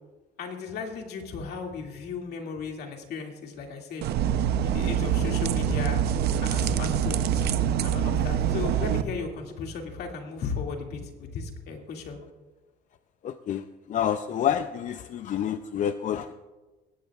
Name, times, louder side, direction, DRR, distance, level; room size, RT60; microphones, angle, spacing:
voice 1, 0.4-4.0 4.6-6.0 6.4-7.5 7.8-12.2, left 5 dB, 75° left, 2 dB, 2.3 m, -35 dB
sound 1, 4.0-9.0, right 9 dB, 70° right, 0.7 m, -25 dB
voice 2, 13.2-13.6 13.9-16.3, left 9 dB, 50° left, 10 dB, 0.5 m, -28 dB
18.0 x 15.5 x 2.4 m, 1.2 s
cardioid pair, 110°, 17 cm